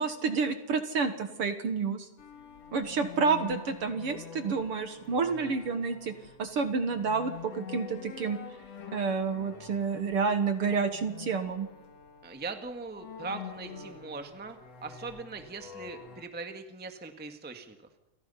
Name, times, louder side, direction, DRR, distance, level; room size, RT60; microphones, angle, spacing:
voice 1, 0.0-2.1 2.7-6.1 6.4-8.4 8.9-11.7, right 5 dB, 55° right, 8 dB, 2.1 m, -29 dB
sound 1, 2.2-16.3, left 7 dB, 60° left, 2.9 m, -46 dB
voice 2, 12.2-17.8, right 3 dB, 5° right, 6 dB, 1.3 m, -40 dB
29.0 x 25.0 x 5.8 m, 0.92 s
omnidirectional pair, 3.4 m